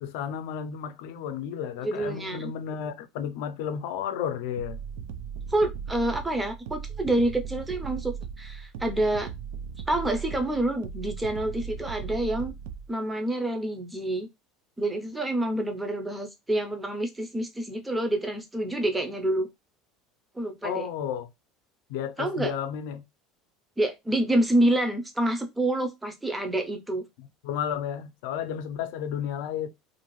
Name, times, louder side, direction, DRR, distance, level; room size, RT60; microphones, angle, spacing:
voice 1, 0.0-4.8 20.6-21.3 21.9-23.0 27.2-29.7, left 8 dB, 75° left, 0.5 m, -32 dB
voice 2, 1.8-2.5 5.5-9.3 9.9-12.5 12.9-14.3 14.8-19.5 20.4-20.9 22.2-22.5 23.8-27.0, right 1 dB, 10° right, 0.5 m, -27 dB
sound 1, 4.6-12.9, right 7 dB, 80° right, 0.4 m, -37 dB
2.5 x 2.3 x 3.1 m
cardioid pair, 145°, 0 cm